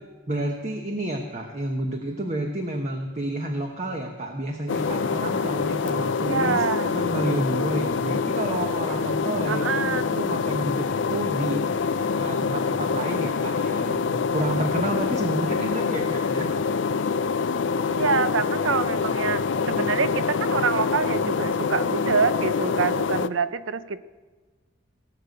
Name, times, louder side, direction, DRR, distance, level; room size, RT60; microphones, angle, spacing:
voice 1, 0.3-6.6 6.9-16.5, right 1 dB, 35° right, 3 dB, 1.1 m, -30 dB
sound 1, 4.7-23.3, left 5 dB, 65° left, 0.4 m, -25 dB
voice 2, 6.2-6.9 9.5-10.1 17.9-19.4 19.7-24.0, right 5 dB, 80° right, 13 dB, 0.6 m, -26 dB
18.0 x 6.8 x 8.4 m, 1.3 s
head